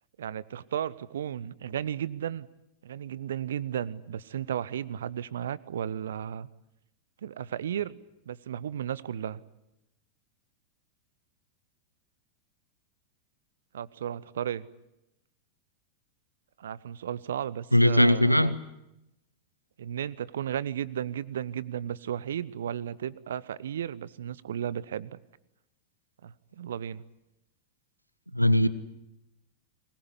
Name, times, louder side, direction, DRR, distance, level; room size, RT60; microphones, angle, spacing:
voice 1, 0.2-2.5 2.8-6.5 7.2-8.0 8.3-9.4 13.7-14.7 16.6-18.6 19.8-25.2 26.2-27.0, right 9 dB, 65° right, 20 dB, 0.9 m, -34 dB
voice 2, 17.7-18.6 28.3-28.7, left 1 dB, 90° right, 16 dB, 1.1 m, -20 dB
22.5 x 20.5 x 9.8 m, 0.88 s
figure-of-eight pair, 90°, 0 cm